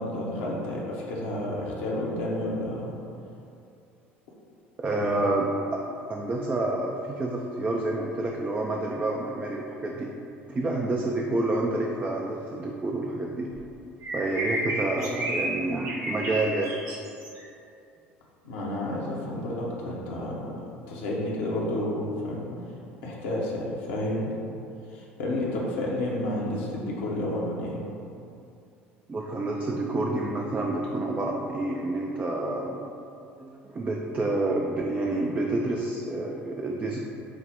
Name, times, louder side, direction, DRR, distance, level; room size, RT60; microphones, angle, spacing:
voice 1, 0.0-2.9 5.0-5.2 18.4-20.6 20.9-22.5 23.0-24.3 24.9-27.9, left 1 dB, 70° left, -4 dB, 0.8 m, -30 dB
voice 2, 4.8-5.8 6.1-10.1 10.5-13.5 14.1-16.7 29.1-32.8 33.4-37.0, right 2 dB, 25° right, 0 dB, 0.4 m, -28 dB
sound 1, 13.5-13.6 14.0-15.5 15.8-17.4, right 1 dB, 55° right, 1.0 m, -31 dB
5.7 x 2.0 x 3.7 m, 2.6 s
figure-of-eight pair, 65°, 6 cm